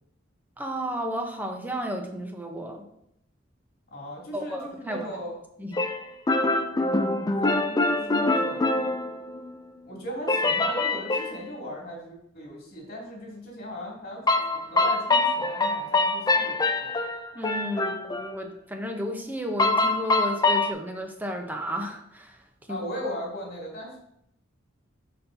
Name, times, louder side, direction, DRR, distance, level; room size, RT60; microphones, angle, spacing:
voice 1, 0.6-2.8 4.3-5.1 5.6-5.8 17.3-22.4 22.7-22.8, equal, 10° right, 3 dB, 0.8 m, -33 dB
voice 2, 3.9-5.3 6.7-8.9 9.8-14.2 14.7-17.0 22.7-24.0, equal, 50° left, -4 dB, 2.8 m, -38 dB
sound 1, 5.7-9.6 10.3-11.4 14.3-18.3 19.6-20.7, left 2 dB, 20° left, 0.4 m, -24 dB
11.0 x 4.3 x 2.7 m, 0.76 s
head